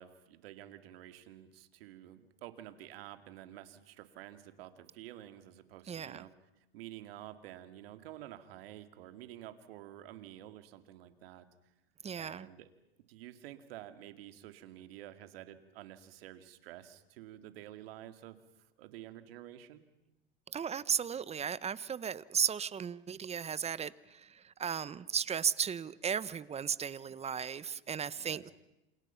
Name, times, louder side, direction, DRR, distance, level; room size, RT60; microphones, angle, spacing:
voice 1, 0.0-6.3 6.7-11.5 12.2-12.7 13.1-19.8 28.2-28.5, right 13 dB, 75° right, 9 dB, 2.5 m, -50 dB
voice 2, 5.9-6.2 12.0-12.5 20.5-28.5, right 7 dB, 20° right, 19 dB, 0.9 m, -35 dB
29.0 x 28.0 x 5.8 m, 0.94 s
supercardioid pair, 110°, 29 cm